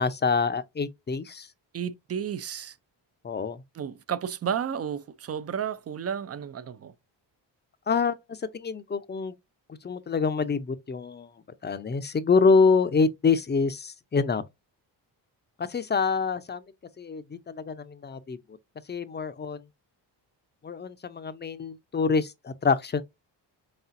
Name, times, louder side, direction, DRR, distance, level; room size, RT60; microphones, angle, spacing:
voice 1, 0.0-1.5 3.2-3.6 7.9-9.3 9.8-11.3 11.6-14.4 15.6-16.6 17.0-18.4 18.9-19.6 20.6-23.0, left 5 dB, 25° left, 0.6 m, -26 dB
voice 2, 1.7-2.7 3.8-6.9, right 8 dB, 35° right, 0.4 m, -32 dB
4.2 x 3.6 x 2.5 m
cardioid pair, 75°, 45 cm